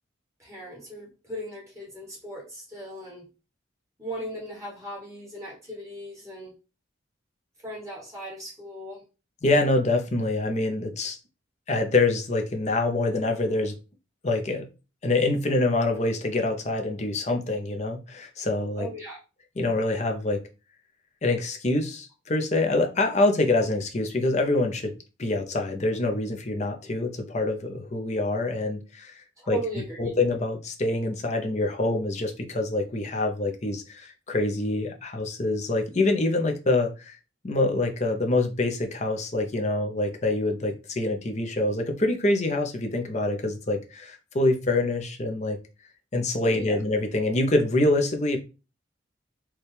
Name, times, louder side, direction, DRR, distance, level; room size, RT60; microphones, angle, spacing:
voice 1, 0.4-3.3 4.0-6.6 7.6-9.0 18.8-19.2 29.4-30.2 46.4-46.8, right 1 dB, 15° right, -4 dB, 1.4 m, -37 dB
voice 2, 9.4-11.2 11.7-13.8 14.2-14.7 15.0-18.9 19.6-20.4 21.2-24.9 25.2-29.6 30.0-37.2 37.4-45.6 46.1-48.4, left 2 dB, 35° left, 4 dB, 0.6 m, -25 dB
4.3 x 2.3 x 3.3 m, 0.31 s
head